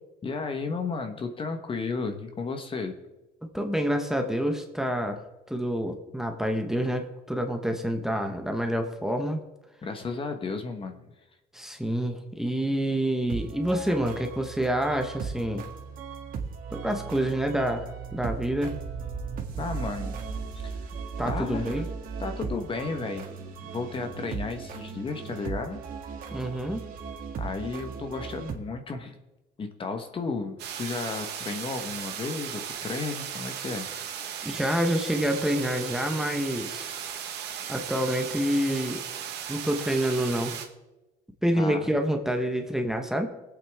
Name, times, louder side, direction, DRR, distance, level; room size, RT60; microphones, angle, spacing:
voice 1, 0.2-2.9 9.8-11.0 19.6-20.3 20.6-20.8 21.2-21.8 22.2-23.3 23.6-25.8 27.4-29.1 29.6-33.9 41.5-41.9, left 4 dB, 30° left, 6 dB, 1.2 m, -33 dB
voice 2, 3.5-5.2 5.5-9.4 11.5-15.6 16.7-18.8 21.2-21.9 26.3-26.8 34.4-36.9 37.7-39.0 39.5-40.5 41.4-43.3, equal, 5° right, 4 dB, 1.1 m, -27 dB
sound 1, 13.3-28.6, right 5 dB, 55° right, 1.8 m, -37 dB
sound 2, 30.6-40.7, right 8 dB, 80° right, 1.6 m, -36 dB
22.5 x 8.4 x 3.6 m, 1.0 s
cardioid pair, 140°, 17 cm